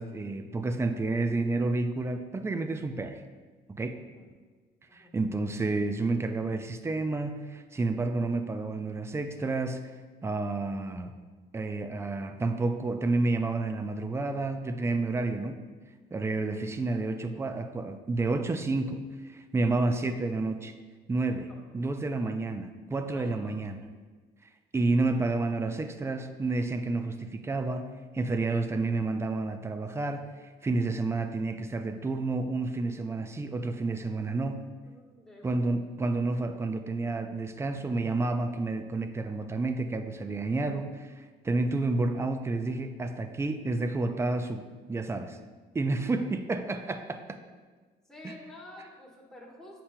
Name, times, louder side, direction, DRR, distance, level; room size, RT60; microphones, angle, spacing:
voice 1, 0.0-3.2 3.7-4.0 4.9-9.8 10.2-11.1 11.5-15.6 16.1-20.7 21.1-21.5 21.7-23.8 24.7-30.3 30.6-34.6 35.4-45.4 45.7-47.4 48.2-48.3, right 3 dB, 15° right, 8 dB, 0.4 m, -30 dB
voice 2, 16.4-16.7 21.5-21.6 22.3-22.4 23.1-23.6 34.3-35.6 46.0-46.2 48.1-49.8, left 1 dB, 5° left, -4 dB, 1.4 m, -51 dB
8.3 x 5.8 x 2.2 m, 1.4 s
cardioid pair, 110°, 17 cm